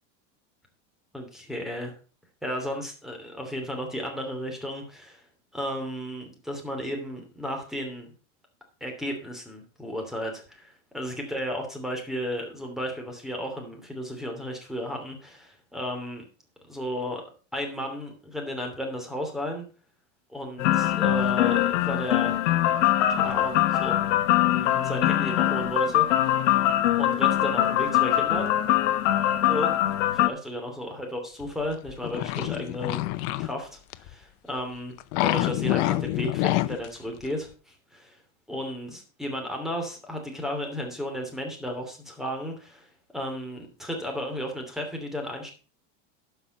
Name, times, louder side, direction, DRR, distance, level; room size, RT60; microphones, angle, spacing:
voice 1, 1.1-1.9 2.4-5.2 5.5-8.1 8.8-16.2 16.7-17.2 17.5-19.7 20.3-22.3 23.1-24.1 24.4-26.1 27.0-28.5 29.5-29.7 30.1-33.0 33.4-34.9 35.2-38.2 38.5-42.9 43.1-45.5, equal, ahead, 3 dB, 2.8 m, -34 dB
sound 1, 20.6-30.3, left 13 dB, 85° left, 1.0 m, -23 dB
sound 2, 31.4-33.5 33.9-34.1 35.0-36.9 37.2-37.3, left 17 dB, 55° left, 0.7 m, -27 dB
12.0 x 5.7 x 5.4 m, 0.36 s
supercardioid pair, 140°, 36 cm